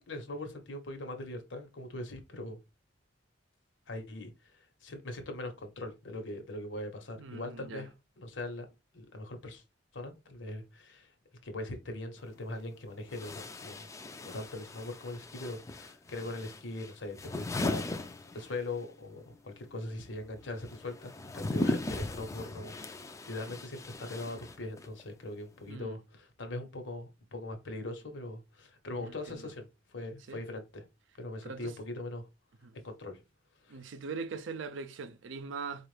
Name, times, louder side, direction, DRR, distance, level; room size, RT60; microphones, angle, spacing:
voice 1, 0.1-2.6 3.9-7.9 8.2-8.7 8.9-9.6 9.9-11.1 11.4-13.9 14.2-30.8 31.2-32.3 32.7-33.2 33.6-33.8, left 2 dB, 80° left, 1.0 m, -41 dB
voice 2, 7.2-7.9 25.7-26.0 28.9-29.5 30.3-30.4 31.4-31.7 32.6-32.8 33.7-35.9, right 4 dB, 85° right, 0.5 m, -41 dB
sound 1, 12.2-12.3 13.1-18.9 19.2-25.0, left 2 dB, 15° left, 0.3 m, -38 dB
4.5 x 2.4 x 3.2 m
head